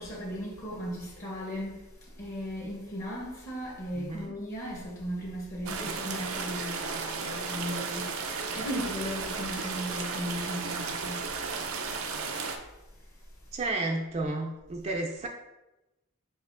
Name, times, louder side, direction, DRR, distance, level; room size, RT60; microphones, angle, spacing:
voice 1, 0.0-1.9 2.2-11.3, equal, 45° left, 0.8 m, -37 dB
voice 2, 4.0-4.4 5.8-6.0 13.5-15.3, right 2 dB, 30° right, 0.3 m, -32 dB
sound 1, 5.7-12.6, right 5 dB, 90° right, 0.5 m, -34 dB
5.5 x 2.9 x 2.5 m
head